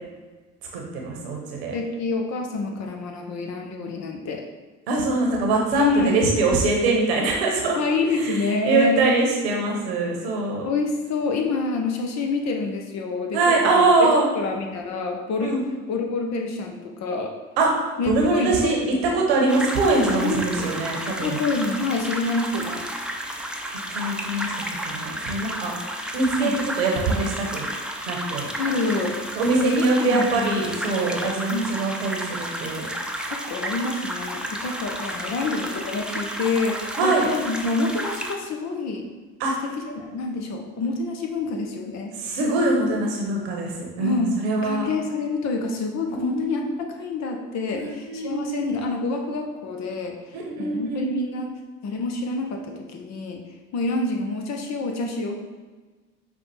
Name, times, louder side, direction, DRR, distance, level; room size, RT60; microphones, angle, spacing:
voice 1, 0.7-1.7 4.9-7.8 8.1-8.3 8.6-10.7 13.3-14.3 15.4-15.6 17.6-17.7 18.1-21.4 23.9-25.7 26.1-27.7 28.1-28.5 29.3-32.9 37.0-37.3 39.4-39.5 42.2-44.9 46.2-46.6 47.7-48.7 50.3-51.1, right 3 dB, 85° right, 0 dB, 0.9 m, -23 dB
voice 2, 1.7-4.4 5.7-6.2 7.7-9.1 10.6-14.1 14.4-15.6 15.9-17.3 18.0-18.6 20.1-20.7 21.2-22.8 26.3-26.6 28.6-29.1 29.5-30.7 31.5-31.7 33.3-39.0 39.8-42.2 44.0-44.3 44.6-53.4 53.7-55.4, left 3 dB, 60° left, 3 dB, 0.8 m, -27 dB
sound 1, 19.5-38.3, right 1 dB, 5° right, 0.6 m, -32 dB
5.5 x 2.4 x 4.0 m, 1.3 s
hypercardioid pair, 55°, 31 cm